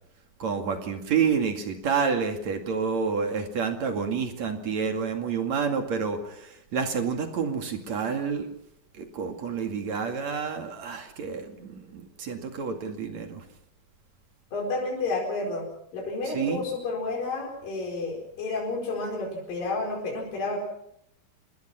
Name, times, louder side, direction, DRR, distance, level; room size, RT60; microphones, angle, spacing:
voice 1, 0.4-8.5 8.9-13.4 16.3-16.6, right 6 dB, 50° right, 5 dB, 3.3 m, -29 dB
voice 2, 14.5-15.6 15.9-20.6, left 3 dB, 70° left, 0 dB, 6.2 m, -30 dB
27.0 x 21.0 x 5.9 m, 0.73 s
omnidirectional pair, 4.2 m